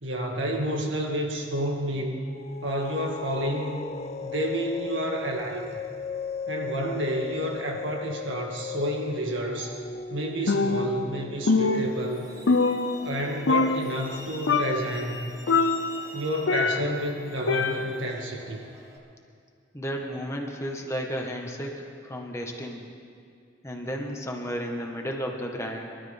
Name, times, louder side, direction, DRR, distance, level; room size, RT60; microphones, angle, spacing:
voice 1, 0.0-2.2 2.6-3.8 4.2-5.7 6.5-9.8 10.1-12.3 13.0-15.3 16.1-18.6, right 1 dB, 75° right, 0 dB, 2.1 m, -30 dB
sound 1, 2.2-15.0, left 6 dB, 35° left, 0.3 m, -38 dB
Percussion, 10.5-11.2 11.5-13.2 13.5-14.2 14.5-15.0 15.5-17.0 17.5-18.1, left 4 dB, 80° left, 0.6 m, -25 dB
Truck, 11.6-19.0, left 1 dB, 20° right, 1.7 m, -46 dB
voice 2, 19.7-22.8 23.6-25.9, equal, 15° left, 1 dB, 1.5 m, -33 dB
24.5 x 12.5 x 3.6 m, 2.3 s
head